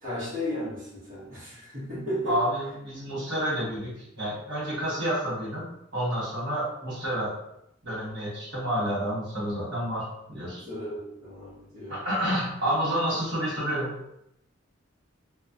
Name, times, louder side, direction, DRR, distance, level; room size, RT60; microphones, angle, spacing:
voice 1, 0.0-2.4 10.6-12.1, equal, 40° right, -12 dB, 1.0 m, -34 dB
voice 2, 2.2-5.7 5.9-7.3 7.8-10.0 10.3-10.6 11.9-13.9, equal, 60° right, -7 dB, 1.4 m, -29 dB
3.1 x 2.1 x 2.6 m, 0.80 s
head